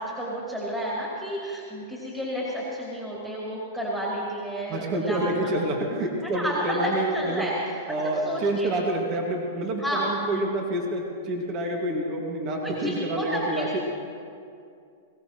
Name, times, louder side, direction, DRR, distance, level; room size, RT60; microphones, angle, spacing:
voice 1, 0.0-5.5 6.2-7.5 8.0-8.7 9.8-10.0 12.6-13.8, equal, 5° right, -7 dB, 3.1 m, -31 dB
voice 2, 4.7-7.5 7.9-13.8, right 1 dB, 35° right, 0 dB, 2.0 m, -28 dB
21.5 x 17.5 x 3.1 m, 2.4 s
hypercardioid pair, 140°, 0 cm